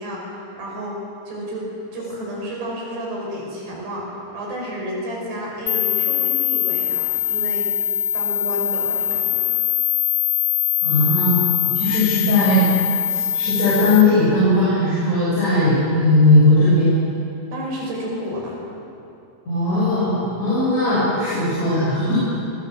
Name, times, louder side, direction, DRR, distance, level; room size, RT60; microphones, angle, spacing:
voice 1, 0.0-1.7 1.9-7.7 8.1-9.6 17.5-18.6, equal, 65° right, -2 dB, 7.5 m, -31 dB
sound 1, 5.7-14.0, left 12 dB, 90° left, 1.9 m, -22 dB
voice 2, 10.8-12.6 13.1-17.0 19.5-22.2, left 1 dB, 40° left, -10 dB, 8.1 m, -18 dB
25.5 x 22.0 x 7.5 m, 2.7 s
omnidirectional pair, 5.2 m